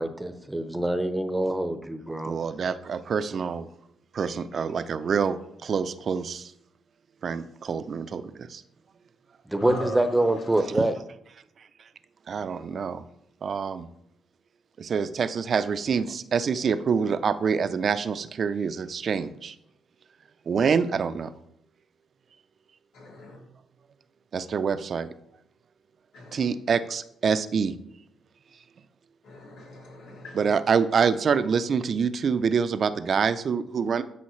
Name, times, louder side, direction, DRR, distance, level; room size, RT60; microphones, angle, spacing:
voice 1, 0.0-2.3 9.5-10.9, right 1 dB, 10° right, 9 dB, 0.8 m, -25 dB
voice 2, 2.3-3.7 4.1-6.5 7.2-8.6 10.7-10.9 12.3-13.0 13.4-13.9 14.8-19.6 20.5-21.3 24.3-25.1 26.3-27.7 30.3-34.0, right 6 dB, 50° right, 12 dB, 0.5 m, -26 dB
voice 3, 9.6-10.0 23.0-23.4 26.1-26.4 29.3-30.4, left 1 dB, 90° left, -2 dB, 2.9 m, -39 dB
12.5 x 5.6 x 3.2 m, 0.76 s
cardioid pair, 90°, 0 cm